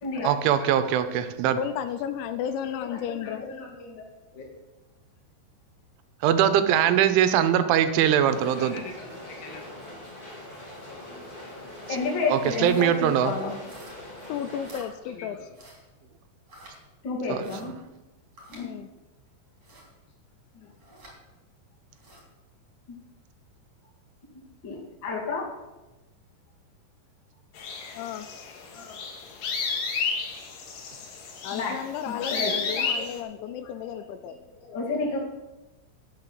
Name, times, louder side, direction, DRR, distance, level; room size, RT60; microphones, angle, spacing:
voice 1, 0.2-1.6 6.2-8.8 12.3-13.3 17.3-17.5, right 10 dB, 85° right, 10 dB, 3.2 m, -22 dB
voice 2, 1.6-3.4 14.3-15.5 18.6-18.9 27.9-28.3 31.4-34.4, left 9 dB, 80° left, 10 dB, 2.8 m, -33 dB
voice 3, 2.8-4.0 4.3-4.5 8.3-9.6 10.9-11.2 11.9-13.6 15.2-15.3 17.0-17.7 18.5-18.7 20.5-20.7 22.9-23.0 24.6-25.5 28.7-29.0 31.5-31.7 32.1-34.0 34.6-35.2, left 3 dB, 35° left, -2 dB, 2.1 m, -32 dB
sound 1, 8.2-14.7, left 1 dB, 15° left, 2.1 m, -43 dB
sound 2, 11.9-12.1 12.5-12.9 13.6-14.1 14.6-14.9 15.5-15.9 16.5-16.8 17.4-17.6 18.4-18.7 19.6-19.9 20.8-21.2 21.9-22.3, right 1 dB, 25° right, 3.3 m, -50 dB
sound 3, 27.6-33.2, left 5 dB, 60° left, 2.5 m, -32 dB
11.0 x 6.6 x 7.8 m, 1.1 s
omnidirectional pair, 5.5 m